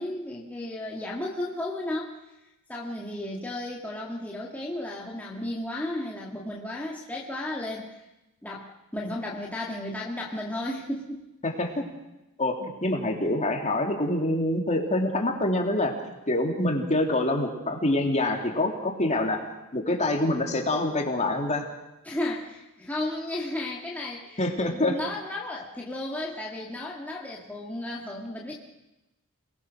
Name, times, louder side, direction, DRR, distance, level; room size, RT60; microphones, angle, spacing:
voice 1, 0.0-2.1 2.7-8.0 8.4-11.3 22.0-28.5, left 1 dB, 5° left, -4 dB, 2.1 m, -34 dB
voice 2, 11.4-11.8 12.4-15.9 16.3-19.4 19.7-21.7 24.4-25.0, left 1 dB, 30° left, 2 dB, 3.1 m, -26 dB
28.0 x 20.5 x 6.5 m, 0.97 s
head